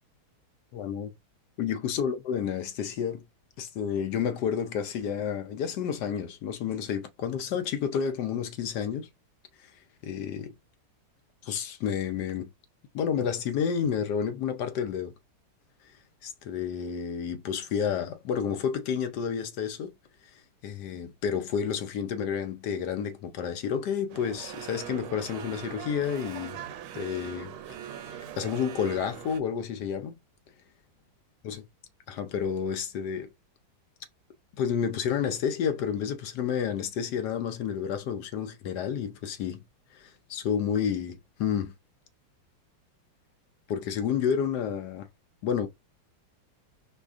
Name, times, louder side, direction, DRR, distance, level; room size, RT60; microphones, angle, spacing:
voice 1, 0.7-1.1 1.6-3.2 3.6-9.1 9.6-9.7 10.0-10.5 11.4-12.5 12.9-15.1 16.2-19.9 20.3-26.6 26.9-27.5 28.1-30.2 31.4-31.7 32.1-33.3 34.6-39.6 39.9-41.7 43.7-45.1 45.4-45.7, left 7 dB, 70° left, 1.0 m, -30 dB
sound 1, 24.1-29.4, right 10 dB, 85° right, 1.4 m, -41 dB
5.0 x 2.3 x 2.4 m
omnidirectional pair, 2.2 m